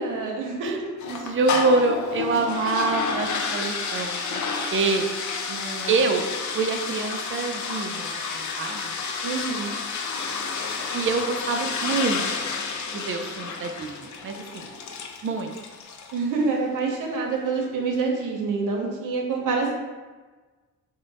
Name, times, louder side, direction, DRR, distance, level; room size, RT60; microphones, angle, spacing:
voice 1, 0.0-0.9 5.5-5.9 9.2-9.8 16.1-19.8, right 4 dB, 85° right, 0 dB, 0.7 m, -27 dB
sound 1, 1.0-16.3, left 5 dB, 65° left, 0.5 m, -30 dB
voice 2, 1.1-4.4 4.7-5.1 5.9-6.3 6.5-9.0 10.9-12.5 12.9-14.7 15.2-15.5, right 3 dB, 40° right, 4 dB, 0.5 m, -26 dB
3.6 x 2.1 x 4.0 m, 1.3 s
cardioid pair, 95°, 31 cm